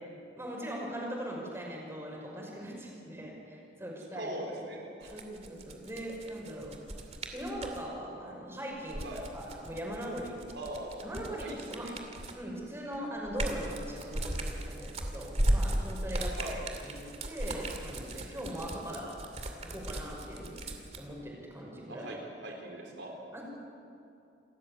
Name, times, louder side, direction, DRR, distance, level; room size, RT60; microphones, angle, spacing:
voice 1, 0.4-4.6 5.1-6.8 7.3-10.4 11.0-11.9 12.3-16.3 16.8-17.0 17.3-19.2 19.6-22.1 23.3-23.4, equal, 15° right, -2 dB, 5.8 m, -40 dB
voice 2, 4.1-5.2 9.0-9.2 10.5-11.1 11.4-11.9 16.4-16.6 21.9-23.1, right 1 dB, 90° right, 1 dB, 3.7 m, -41 dB
sound 1, 5.0-7.8 8.7-12.5 12.9-21.0, right 1 dB, 40° right, 2.4 m, -36 dB
28.0 x 14.0 x 8.2 m, 2.7 s
head